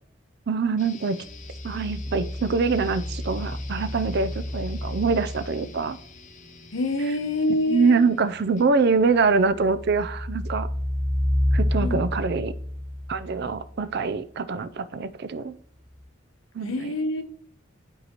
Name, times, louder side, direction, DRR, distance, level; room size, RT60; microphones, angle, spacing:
voice 1, 0.5-1.2 1.6-6.0 7.7-10.7 11.5-12.5 13.1-15.5 16.5-16.9, right 4 dB, 55° right, 13 dB, 0.5 m, -24 dB
sound 1, 0.8-8.8, left 4 dB, 40° left, 0.6 m, -47 dB
sound 2, 1.2-5.9 9.2-13.8 15.9-16.0, left 1 dB, 40° right, 2.7 m, -30 dB
voice 2, 6.7-8.0 11.8-12.0 16.6-17.2, left 1 dB, 90° left, 7 dB, 1.0 m, -26 dB
11.0 x 4.7 x 2.9 m, 0.62 s
head